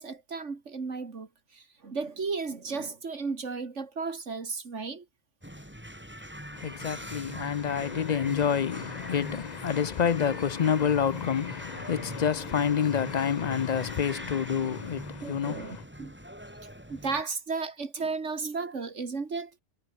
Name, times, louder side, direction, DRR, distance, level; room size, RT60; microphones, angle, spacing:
voice 1, 0.0-5.1 15.2-16.1 16.9-19.6, right 4 dB, 85° right, 2.6 m, -34 dB
sound 1, 5.4-17.2, equal, 10° right, 7.7 m, -42 dB
voice 2, 6.5-15.8, left 8 dB, 50° left, 0.5 m, -28 dB
omnidirectional pair, 1.2 m